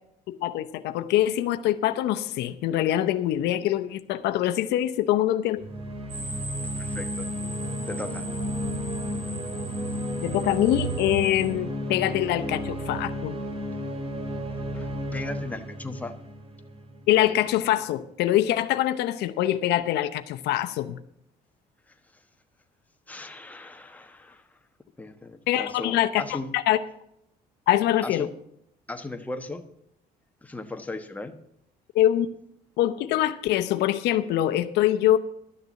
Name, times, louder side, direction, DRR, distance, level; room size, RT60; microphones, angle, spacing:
voice 1, 0.3-5.6 10.2-13.4 17.1-21.0 25.5-26.8 27.7-28.3 31.9-32.3 32.8-35.2, left 13 dB, 80° left, 10 dB, 0.7 m, -24 dB
sound 1, 5.6-17.1, equal, 35° right, 2.1 m, -33 dB
sound 2, 6.1-11.5, right 5 dB, 75° right, 3.1 m, -37 dB
voice 2, 6.8-7.3 7.9-8.3 14.7-16.2 23.1-24.5 25.0-26.5 28.0-28.3 28.9-29.6 30.4-31.3, left 2 dB, 10° left, 6 dB, 1.1 m, -37 dB
12.0 x 6.7 x 7.4 m, 0.75 s
cardioid pair, 110°, 17 cm